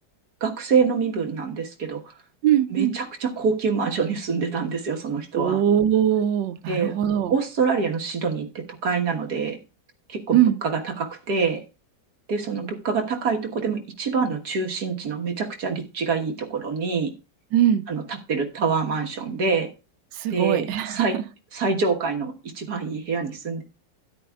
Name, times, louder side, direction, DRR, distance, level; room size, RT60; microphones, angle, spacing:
voice 1, 0.4-2.1 2.7-5.6 6.7-6.9 7.3-8.5 8.8-9.6 10.1-11.6 12.3-17.1 17.9-19.7 20.3-21.2 21.5-23.6, right 5 dB, 60° right, 2 dB, 1.9 m, -26 dB
voice 2, 2.4-2.9 5.3-7.3 10.3-10.6 17.5-17.8 20.2-21.2, right 10 dB, 80° right, 11 dB, 1.3 m, -21 dB
12.5 x 10.0 x 2.3 m, 0.30 s
omnidirectional pair, 2.0 m